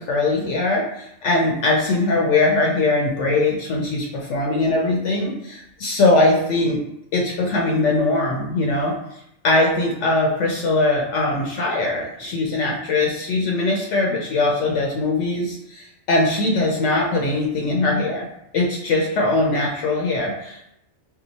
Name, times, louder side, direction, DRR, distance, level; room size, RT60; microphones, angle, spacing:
voice 1, 0.0-6.8 7.1-8.9 9.4-18.3 18.5-20.7, left 2 dB, 75° left, -1 dB, 0.9 m, -21 dB
2.8 x 2.2 x 3.9 m, 0.80 s
omnidirectional pair, 1.3 m